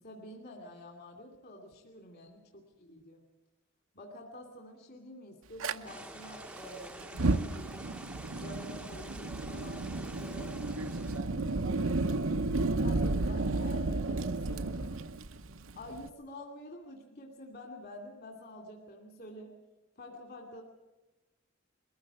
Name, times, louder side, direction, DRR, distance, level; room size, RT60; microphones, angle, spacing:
voice 1, 0.0-2.4 2.8-3.2 3.9-7.9 8.3-10.8 12.8-14.7 15.8-19.5 20.0-20.6, left 1 dB, 50° left, 3 dB, 2.5 m, -48 dB
Fire, 5.6-5.7 7.0-16.1, right 2 dB, 70° right, 0.8 m, -32 dB
sound 1, 5.8-11.2, right 1 dB, 5° right, 0.8 m, -48 dB
22.0 x 15.0 x 8.8 m, 1.1 s
head